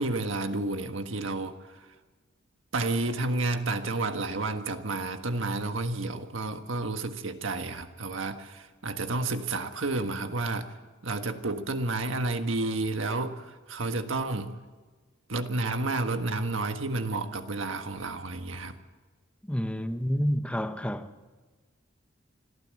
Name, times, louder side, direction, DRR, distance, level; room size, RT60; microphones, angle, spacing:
voice 1, 0.0-1.5 2.7-10.7 11.0-14.5 15.3-18.8, right 2 dB, 85° right, 1.5 m, -30 dB
voice 2, 19.5-21.1, equal, 5° left, 0.9 m, -29 dB
25.0 x 14.0 x 7.7 m
head